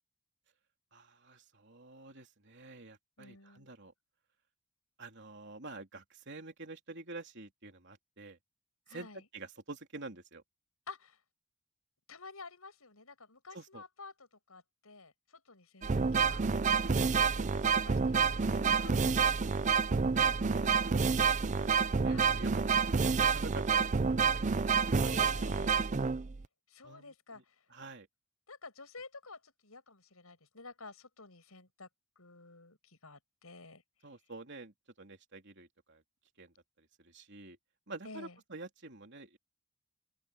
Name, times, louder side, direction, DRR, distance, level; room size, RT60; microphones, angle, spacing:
voice 1, 0.9-3.9 5.0-8.4 8.9-9.1 9.3-10.4 13.5-13.8 18.6-18.8 20.1-21.3 21.6-24.4 26.8-27.4 27.7-28.1 34.0-36.0 36.4-37.6 37.9-39.4, right 3 dB, 55° right, 3.4 m, -48 dB
voice 2, 3.2-3.7 8.9-9.2 10.9-11.2 12.1-16.6 17.0-19.9 22.0-22.4 25.0-25.9 26.7-27.7 28.5-31.9 32.2-33.8 38.0-38.4, left 3 dB, 80° left, 6.3 m, -51 dB
sound 1, 15.8-26.5, right 5 dB, 35° right, 0.5 m, -28 dB
open air
head